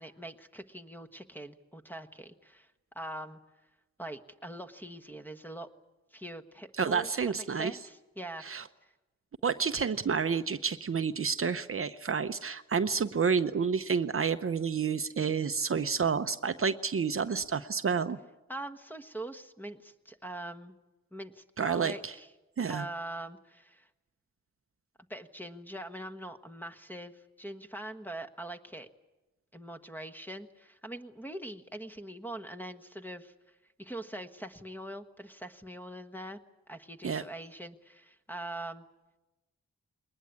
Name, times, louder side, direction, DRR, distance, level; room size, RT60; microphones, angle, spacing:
voice 1, 0.0-3.4 4.0-5.7 6.1-8.4 8.8-8.9 18.5-20.8 21.1-22.3 22.6-23.9 25.1-28.9 29.5-33.3 33.8-36.4 36.7-38.8, right 1 dB, 5° left, 8 dB, 1.4 m, -43 dB
voice 2, 6.8-7.7 8.4-8.6 9.4-18.2 21.6-22.1 22.6-22.9 37.0-37.2, right 6 dB, 45° right, 10 dB, 0.7 m, -29 dB
21.5 x 19.5 x 9.6 m, 1.1 s
cardioid pair, 75°, 30 cm